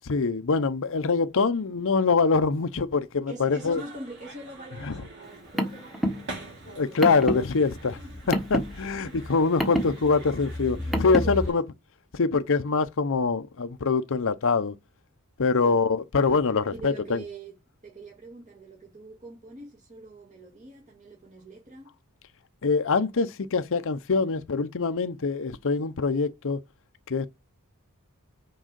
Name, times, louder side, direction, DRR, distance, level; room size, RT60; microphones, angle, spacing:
voice 1, 0.0-3.8 4.8-4.9 6.7-8.0 8.3-11.6 12.1-14.7 15.4-17.2 22.6-26.6 27.1-27.3, left 4 dB, 65° left, 0.7 m, -24 dB
voice 2, 3.3-7.4 8.0-8.1 9.0-9.2 9.7-9.9 10.8-11.6 15.6-15.8 16.7-17.6 17.8-21.9, right 2 dB, 35° right, 1.8 m, -43 dB
sound 1, 3.5-11.5, right 2 dB, 55° right, 2.7 m, -46 dB
Car, 5.2-11.5, equal, ahead, 1.3 m, -30 dB
6.3 x 4.7 x 6.7 m
head